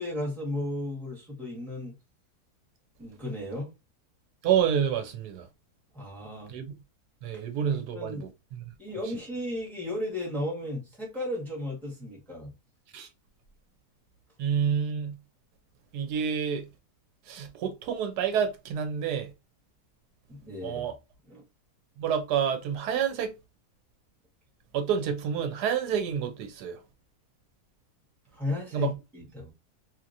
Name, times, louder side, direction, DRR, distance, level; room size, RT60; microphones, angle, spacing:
voice 1, 0.0-1.9 3.0-3.7 5.9-6.5 7.8-8.2 8.8-12.5 20.3-20.8 21.3-21.4 28.3-29.5, left 1 dB, ahead, 1.1 m, -34 dB
voice 2, 4.4-5.5 6.5-6.7 7.2-8.6 12.9-13.1 14.4-15.1 15.9-16.7 17.3-19.3 20.6-20.9 22.0-23.3 24.7-26.8 28.7-28.9, right 8 dB, 90° right, 1.3 m, -28 dB
2.8 x 2.8 x 2.5 m
omnidirectional pair, 1.7 m